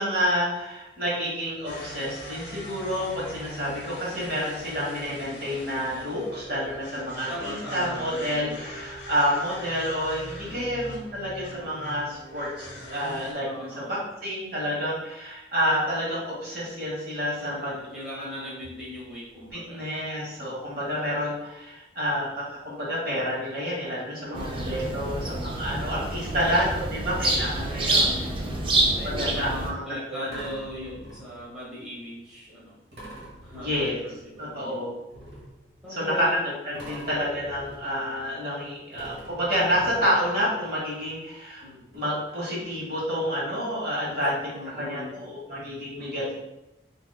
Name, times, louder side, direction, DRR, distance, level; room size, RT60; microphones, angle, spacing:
voice 1, 0.0-17.9 18.1-18.5 19.5-28.1 29.0-30.4 33.6-34.0 34.4-34.9 35.9-41.6 41.9-44.4 44.8-46.3, equal, 55° right, -6 dB, 1.3 m, -29 dB
Autumnal VO Bed, 1.6-13.3, left 1 dB, 75° left, 0.6 m, -41 dB
voice 2, 7.3-8.7 10.4-10.7 13.4-14.1 17.3-19.8 24.2-25.2 26.1-26.4 27.6-32.8 33.4-34.9 35.8-36.5 36.7-37.1 41.6-41.9 44.1-44.3 44.5-45.2 46.0-46.3, left 1 dB, 5° right, -10 dB, 1.0 m, -40 dB
sound 1, 24.3-29.7, right 2 dB, 30° right, 0.4 m, -27 dB
sound 2, 30.3-31.6 32.9-34.5 35.1-36.4 36.7-38.6 38.9-40.7 41.6-41.7 41.9-42.0, right 1 dB, 75° right, 1.1 m, -46 dB
3.6 x 2.7 x 2.2 m, 0.93 s
head